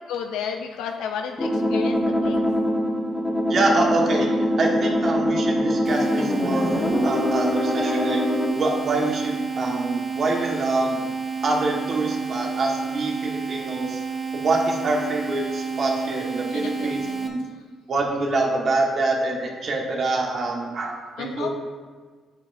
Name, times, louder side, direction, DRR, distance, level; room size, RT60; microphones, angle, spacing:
voice 1, 0.1-2.4 16.5-17.3 21.2-21.5, left 7 dB, 90° left, 4 dB, 0.4 m, -32 dB
sound 1, 1.4-8.5, left 1 dB, 20° left, 1.1 m, -23 dB
voice 2, 3.5-8.2 8.5-11.1 11.4-14.0 14.3-17.4 17.9-21.5, right 2 dB, 55° right, 0 dB, 1.4 m, -25 dB
sound 2, 5.8-17.3, right 5 dB, 20° right, 0.9 m, -30 dB
8.8 x 6.8 x 2.6 m, 1.5 s
cardioid pair, 90°, 0 cm